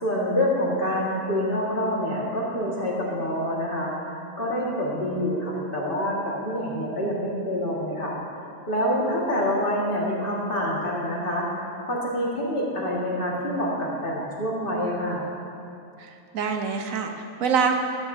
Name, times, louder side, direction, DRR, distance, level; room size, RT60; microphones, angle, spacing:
voice 1, 0.0-3.9 4.4-8.2 8.7-11.6 11.9-15.3, equal, 40° left, -5 dB, 2.0 m, -26 dB
voice 2, 16.0-17.7, right 6 dB, 80° right, 4 dB, 1.2 m, -25 dB
13.5 x 12.0 x 2.7 m, 2.6 s
omnidirectional pair, 1.4 m